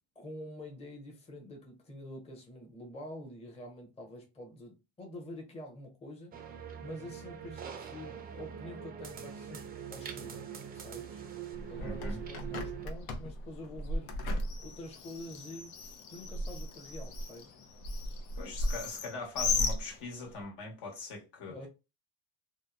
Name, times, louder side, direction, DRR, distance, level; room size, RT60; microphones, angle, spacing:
voice 1, 0.2-6.3 6.8-9.6 9.9-11.2 11.7-14.2 14.6-15.8 16.1-17.5 21.5-21.7, left 1 dB, 15° left, 0.7 m, -46 dB
sound 1, 6.3-12.9, right 8 dB, 25° right, 0.4 m, -43 dB
Bird, 11.5-20.4, left 2 dB, 85° left, 0.7 m, -36 dB
voice 2, 11.8-12.2 18.4-21.6, left 3 dB, 70° left, 1.3 m, -42 dB
2.8 x 2.1 x 2.4 m
cardioid pair, 110°, 40 cm